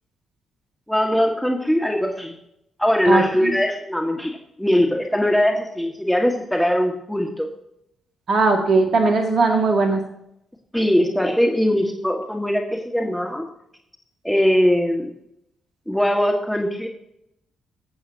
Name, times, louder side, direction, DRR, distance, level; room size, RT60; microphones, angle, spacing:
voice 1, 0.9-2.4 2.8-7.5 10.7-13.4 14.2-15.1 15.9-16.9, equal, 5° left, 1 dB, 1.9 m, -21 dB
voice 2, 3.1-3.5 8.3-10.0, right 3 dB, 60° right, 3 dB, 2.3 m, -19 dB
22.5 x 8.3 x 2.9 m, 0.79 s
hypercardioid pair, 45°, 0 cm